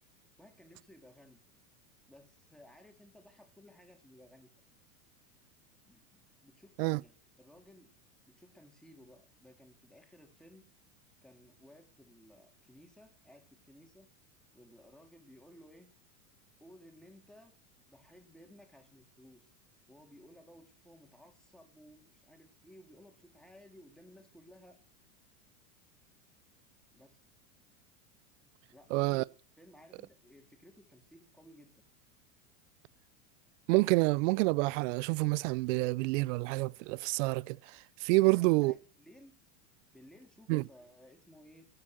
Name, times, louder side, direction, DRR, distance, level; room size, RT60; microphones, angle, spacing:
voice 1, 0.4-1.4 2.1-4.5 5.8-7.9 8.3-10.6 11.2-14.1 14.5-15.9 16.6-17.5 17.9-19.5 19.9-24.8 26.9-27.2 28.7-29.3 29.6-31.7 38.2-39.3 39.9-41.7, equal, ahead, 3.4 m, -58 dB
voice 2, 28.9-29.2 33.7-38.8 40.5-40.6, right 23 dB, 60° right, 0.6 m, -28 dB
15.5 x 8.7 x 6.7 m
hypercardioid pair, 115°, 43 cm